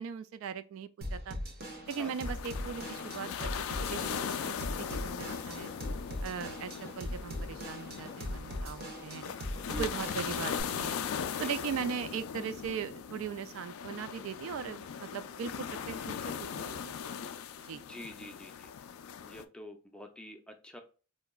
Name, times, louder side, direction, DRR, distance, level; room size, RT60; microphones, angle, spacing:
voice 1, 0.0-1.4 1.9-5.7 6.2-9.2 9.8-11.0 11.4-16.9 17.6-17.8, right 7 dB, 70° right, 0.3 m, -39 dB
Drum kit / Drum, 1.0-10.6, equal, 45° right, 0.8 m, -40 dB
sound 1, 1.9-19.4, left 7 dB, 80° left, 0.3 m, -39 dB
voice 2, 9.7-10.0 11.3-11.5 17.7-18.7 19.2-20.8, equal, 5° left, 0.4 m, -46 dB
4.3 x 2.9 x 2.3 m
head